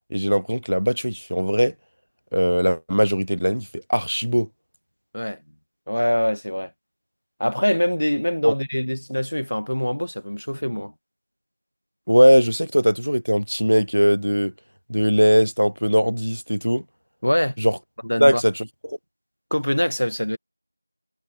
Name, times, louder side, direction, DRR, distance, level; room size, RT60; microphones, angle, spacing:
voice 1, 0.1-1.7 2.3-4.5 8.4-8.5 12.1-14.5 14.9-16.8 17.6-17.8 18.2-19.0, equal, 80° right, 0.7 m, -20 dB
voice 2, 5.9-6.7 7.4-10.9 17.2-17.6 18.0-18.4 19.5-20.4, equal, 55° left, 2.1 m, -24 dB
figure-of-eight pair, 175°, 0 cm